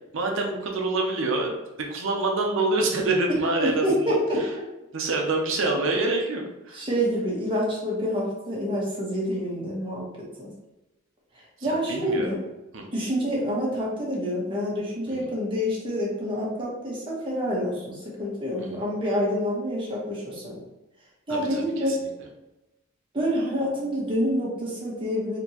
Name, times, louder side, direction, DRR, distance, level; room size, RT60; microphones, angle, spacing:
voice 1, 0.1-1.5 1.9-4.5 4.9-6.8 11.6-12.4 12.7-12.9 15.1-15.3 18.6-18.8 21.3-22.0, right 2 dB, 65° right, 1 dB, 0.8 m, -27 dB
voice 2, 3.6-4.4 6.7-10.5 11.4-12.4 12.9-20.6 21.3-22.0 23.1-25.4, equal, 25° right, -5 dB, 1.3 m, -27 dB
4.2 x 3.0 x 2.9 m, 0.98 s
head